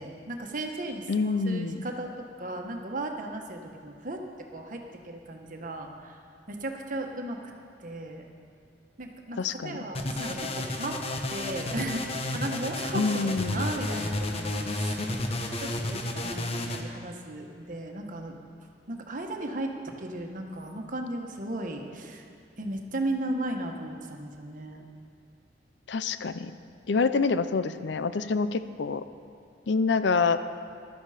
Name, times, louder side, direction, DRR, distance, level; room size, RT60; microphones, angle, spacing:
voice 1, 0.0-2.1 2.4-4.2 4.5-6.2 6.5-7.4 7.8-8.3 9.0-11.0 11.3-15.0 15.6-18.3 18.9-22.2 22.6-24.9, right 1 dB, 45° right, 2 dB, 1.3 m, -36 dB
voice 2, 1.1-1.9 9.4-9.8 12.9-13.6 25.9-26.5 26.9-29.0 29.7-30.4, left 4 dB, 75° left, 12 dB, 0.5 m, -26 dB
sound 1, 9.9-16.8, left 1 dB, 35° left, 0.9 m, -32 dB
14.5 x 12.0 x 5.0 m, 2.5 s
head